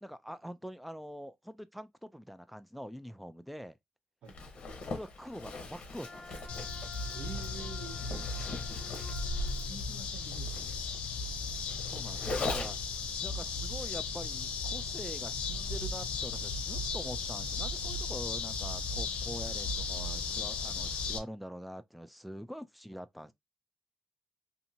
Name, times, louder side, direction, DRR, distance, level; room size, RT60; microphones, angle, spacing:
voice 1, 0.0-3.8 4.9-6.4 11.9-12.8 13.2-23.3, equal, ahead, 0.3 m, -45 dB
Zipper (clothing), 4.3-13.0, left 2 dB, 60° left, 0.9 m, -40 dB
Wind instrument woodwind instrument, 6.0-9.7, left 2 dB, 15° left, 0.7 m, -51 dB
sound 1, 6.5-21.2, left 4 dB, 90° left, 0.6 m, -36 dB
voice 2, 7.1-8.0 9.6-10.8, right 6 dB, 75° right, 0.9 m, -46 dB
2.7 x 2.6 x 2.6 m
cardioid pair, 105°, 2 cm